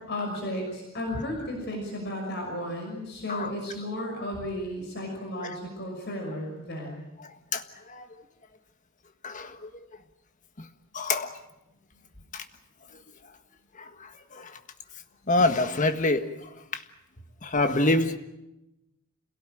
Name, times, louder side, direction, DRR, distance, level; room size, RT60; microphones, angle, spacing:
voice 1, 0.1-7.0, left 1 dB, 55° left, 6.0 m, -34 dB
voice 2, 7.5-8.1 9.2-9.7 10.6-10.7 10.9-11.4 12.3-12.4 13.8-14.6 15.3-16.8 17.4-18.2, left 2 dB, 40° left, 1.6 m, -27 dB
27.5 x 17.5 x 9.0 m
head